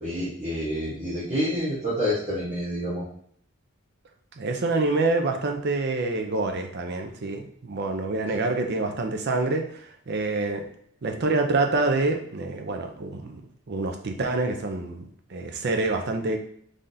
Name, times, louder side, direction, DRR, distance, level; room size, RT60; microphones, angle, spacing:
voice 1, 0.0-3.0 8.3-8.4, equal, 30° right, -10 dB, 1.1 m, -28 dB
voice 2, 4.4-10.6 11.0-13.4 13.7-16.4, right 3 dB, 50° right, 5 dB, 0.5 m, -26 dB
3.8 x 3.4 x 2.7 m, 0.65 s
head